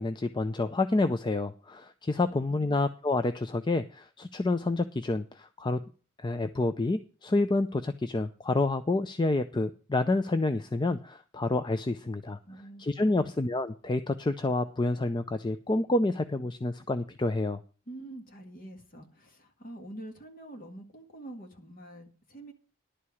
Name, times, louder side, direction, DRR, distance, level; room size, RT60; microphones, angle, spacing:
voice 1, 0.0-5.8 6.2-12.4 12.8-17.6, left 2 dB, 20° left, 10 dB, 0.4 m, -28 dB
voice 2, 2.2-2.8 12.5-13.3 17.9-22.5, right 1 dB, 45° left, 3 dB, 2.0 m, -46 dB
11.5 x 4.7 x 8.4 m, 0.37 s
head